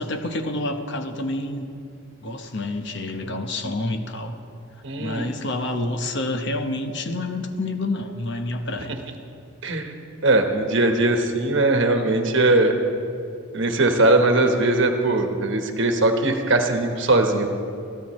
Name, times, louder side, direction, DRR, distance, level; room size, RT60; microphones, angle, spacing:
voice 1, 0.0-1.7 2.2-4.4 5.0-8.9, left 2 dB, 55° left, 6 dB, 0.9 m, -28 dB
voice 2, 4.8-5.3 9.6-9.9 10.2-12.8 13.5-17.5, right 2 dB, 55° right, 4 dB, 1.2 m, -20 dB
21.5 x 14.0 x 3.2 m, 2.6 s
head